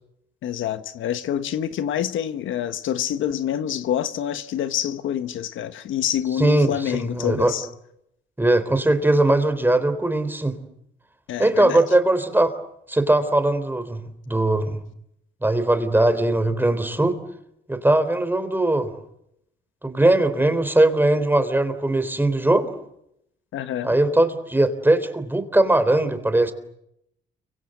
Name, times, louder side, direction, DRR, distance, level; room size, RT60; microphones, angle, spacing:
voice 1, 0.4-7.7 11.3-11.8 23.5-23.9, left 10 dB, 75° left, 1.3 m, -27 dB
voice 2, 6.4-7.5 8.4-10.6 11.4-12.5 12.9-14.8 15.4-17.2 17.7-18.9 19.8-22.7 23.8-26.5, right 1 dB, 10° right, 3.7 m, -20 dB
30.0 x 25.0 x 7.9 m
cardioid pair, 90°, 20 cm